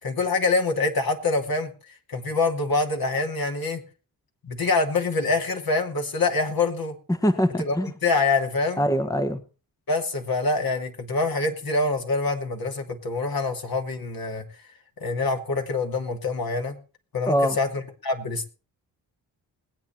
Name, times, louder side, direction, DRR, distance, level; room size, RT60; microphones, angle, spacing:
voice 1, 0.0-1.7 2.1-3.8 4.4-6.9 7.6-8.9 9.9-14.4 15.0-16.8 17.1-18.4, left 3 dB, 50° left, 3 dB, 2.8 m, -25 dB
voice 2, 7.1-7.9 8.8-9.4 17.3-17.6, equal, 10° left, 8 dB, 1.4 m, -23 dB
20.5 x 8.9 x 4.5 m, 0.35 s
hypercardioid pair, 40°, 45 cm